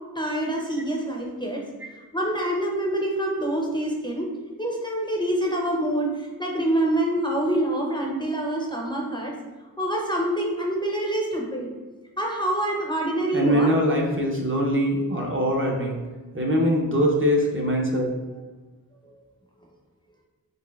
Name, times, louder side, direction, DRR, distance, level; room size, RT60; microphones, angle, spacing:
voice 1, 0.2-1.6 2.1-4.3 4.6-9.3 9.8-11.7 12.2-13.7 19.0-19.2, right 1 dB, 15° left, -2 dB, 0.5 m, -26 dB
voice 2, 13.3-16.0 16.3-18.1, equal, 35° right, -2 dB, 0.6 m, -22 dB
4.1 x 3.0 x 2.3 m, 1.3 s
wide cardioid pair, 65°, 36 cm